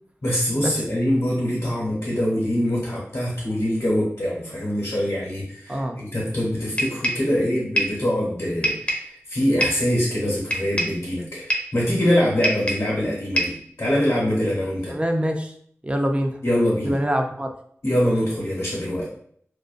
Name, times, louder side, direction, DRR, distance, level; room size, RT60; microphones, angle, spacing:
voice 1, 0.2-14.9 16.4-16.9 17.8-19.1, equal, 70° left, -6 dB, 0.9 m, -24 dB
voice 2, 5.7-6.0 14.9-15.5 15.8-16.4 16.8-17.5, equal, 25° right, 4 dB, 0.4 m, -24 dB
sound 1, 6.8-7.3 7.8-8.0 8.6-9.1 9.6-9.9 10.5-11.0 11.5-11.8 12.4-12.9 13.4-13.6, equal, 25° left, 0.6 m, -25 dB
2.4 x 2.2 x 2.4 m, 0.62 s
cardioid pair, 40°, 5 cm